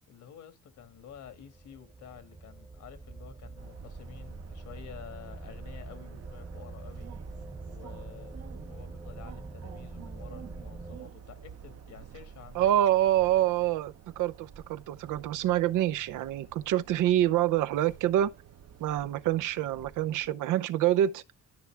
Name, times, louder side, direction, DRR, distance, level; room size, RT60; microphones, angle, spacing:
voice 1, 0.1-7.1 7.6-8.4 8.6-12.8, left 9 dB, 75° left, 1.9 m, -50 dB
sound 1, 0.8-11.0, right 2 dB, 10° right, 0.4 m, -44 dB
sound 2, 3.6-20.3, right 8 dB, 55° right, 0.8 m, -50 dB
voice 2, 12.5-18.3 18.8-21.2, right 12 dB, 90° right, 0.7 m, -26 dB
12.5 x 5.7 x 3.4 m
cardioid pair, 90°, 30 cm